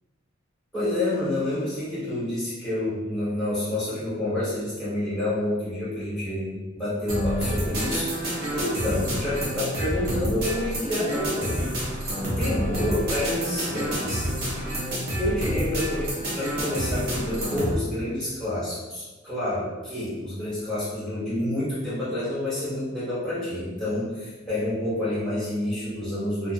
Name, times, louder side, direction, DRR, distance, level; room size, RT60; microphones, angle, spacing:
voice 1, 0.7-12.1 12.4-14.2 15.2-26.5, left 1 dB, ahead, -12 dB, 1.5 m, -28 dB
sound 1, 7.1-17.7, equal, 50° right, 0.8 m, -28 dB
2.7 x 2.4 x 2.5 m, 1.2 s
head